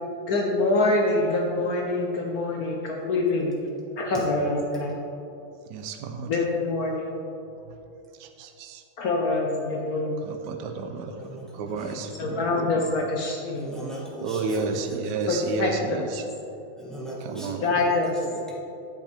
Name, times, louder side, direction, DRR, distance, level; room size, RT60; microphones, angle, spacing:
voice 1, 0.3-3.5 4.0-5.0 6.3-7.1 9.0-10.2 12.2-13.7 15.3-16.0 17.6-18.1, left 2 dB, 60° left, 0 dB, 1.0 m, -25 dB
voice 2, 5.7-6.4 7.7-7.8 8.2-8.8 10.2-11.3 11.5-12.9 14.2-16.2 17.2-17.7, right 4 dB, 65° right, 6 dB, 1.1 m, -32 dB
voice 3, 13.5-15.5 16.8-17.8 18.3-18.6, right 1 dB, ahead, -7 dB, 1.6 m, -37 dB
9.1 x 7.7 x 3.5 m, 2.7 s
omnidirectional pair, 2.3 m